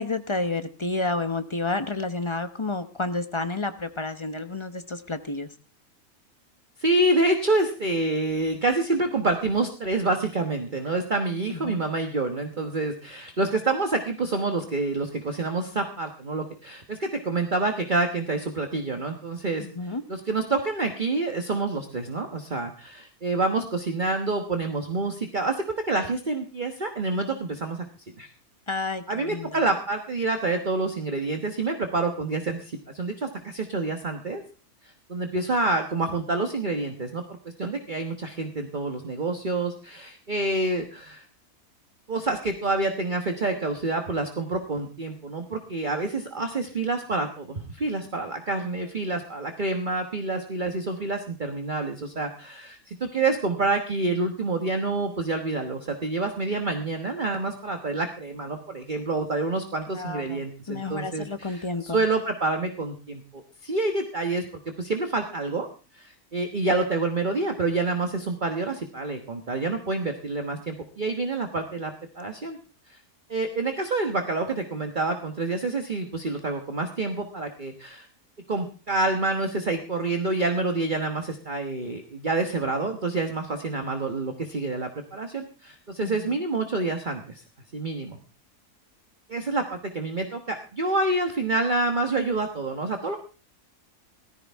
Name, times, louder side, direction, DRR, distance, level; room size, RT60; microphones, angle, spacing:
voice 1, 0.0-5.5 11.5-11.8 19.6-20.0 28.7-29.6 59.9-62.0 86.0-86.4, left 3 dB, 25° left, 9 dB, 0.9 m, -30 dB
voice 2, 6.8-27.8 28.2-28.3 29.1-34.4 34.8-37.2 37.6-41.3 42.1-64.4 64.8-65.7 65.9-72.6 72.9-73.0 73.3-78.1 78.5-87.4 87.7-88.2 89.3-93.2, right 2 dB, 35° right, 5 dB, 1.4 m, -27 dB
17.5 x 14.5 x 3.6 m, 0.35 s
omnidirectional pair, 1.5 m